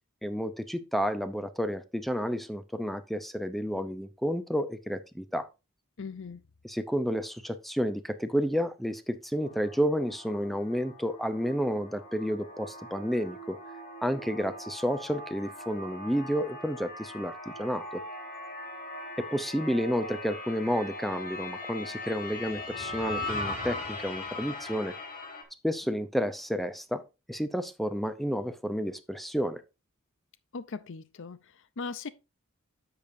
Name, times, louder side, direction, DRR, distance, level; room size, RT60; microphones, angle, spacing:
voice 1, 0.2-5.5 6.6-13.6 14.0-18.0 19.2-24.9 25.6-27.0 27.3-29.6, equal, ahead, 0.6 m, -31 dB
voice 2, 6.0-6.4 30.5-32.1, left 4 dB, 60° left, 0.6 m, -39 dB
sound 1, 9.4-25.4, left 2 dB, 40° left, 1.9 m, -40 dB
10.0 x 6.9 x 2.6 m
head